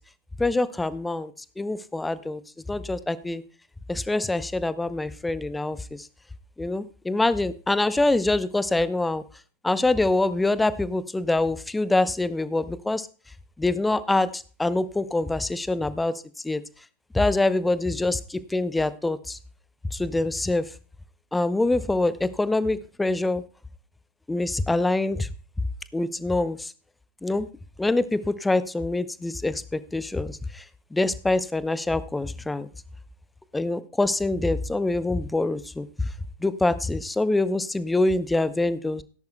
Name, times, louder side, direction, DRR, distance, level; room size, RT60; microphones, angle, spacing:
voice 1, 0.4-2.4 2.7-3.4 3.9-6.1 6.6-9.2 9.6-13.1 13.6-16.1 16.4-16.6 17.1-19.4 19.9-20.7 21.3-23.4 24.3-25.3 25.9-26.7 27.2-27.5 27.8-30.6 30.9-32.7 33.5-36.1 36.4-39.0, left 2 dB, 5° left, 16 dB, 0.6 m, -25 dB
17.5 x 10.5 x 2.2 m, 0.38 s
figure-of-eight pair, 90°, 0 cm